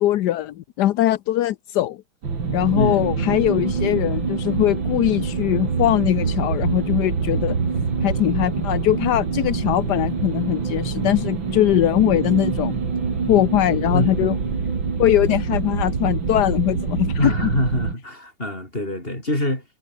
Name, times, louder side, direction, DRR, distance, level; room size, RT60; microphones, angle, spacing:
voice 1, 0.0-2.0 2.5-7.6 8.0-12.8 13.3-14.4 15.0-17.3, left 13 dB, 65° left, 1.1 m, -21 dB
sound 1, 2.2-17.9, right 5 dB, 60° right, 3.6 m, -25 dB
voice 2, 2.7-3.1 13.9-14.7 17.2-19.6, left 1 dB, 25° left, 7.9 m, -25 dB
omnidirectional pair, 2.3 m